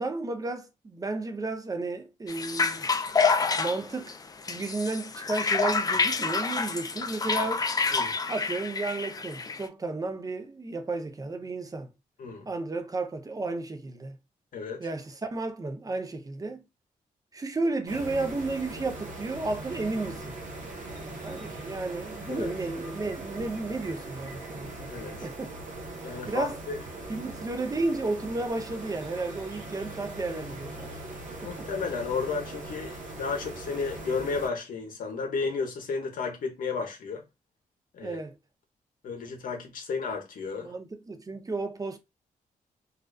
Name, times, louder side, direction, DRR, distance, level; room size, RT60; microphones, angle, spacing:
voice 1, 0.0-2.9 3.6-4.2 4.4-7.7 8.3-11.9 12.5-14.2 14.8-16.6 17.3-20.4 21.0-25.5 26.3-26.6 27.1-31.0 31.4-31.7 38.0-38.4 40.6-42.0, right 3 dB, 25° right, 0.6 m, -33 dB
sound 1, 2.3-9.7, left 4 dB, 25° left, 0.3 m, -28 dB
voice 2, 14.5-14.9 22.3-22.5 24.9-25.2 26.0-26.8 31.4-37.2 37.9-38.2 39.0-40.7, left 4 dB, 75° left, 0.7 m, -33 dB
sound 2, 17.8-34.5, right 2 dB, 65° right, 1.1 m, -40 dB
2.4 x 2.2 x 2.2 m
cardioid pair, 70°, 15 cm